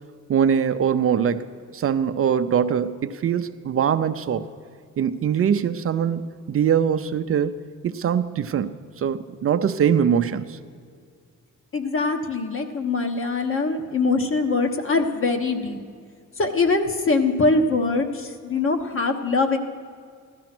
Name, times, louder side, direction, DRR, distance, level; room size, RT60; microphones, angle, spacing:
voice 1, 0.3-1.4 1.7-4.5 5.0-7.6 7.8-10.6, right 8 dB, 45° right, 10 dB, 0.5 m, -22 dB
voice 2, 11.7-15.8 16.4-19.6, left 3 dB, 45° left, 6 dB, 1.2 m, -23 dB
16.0 x 12.5 x 6.0 m, 2.2 s
cardioid pair, 145°, 31 cm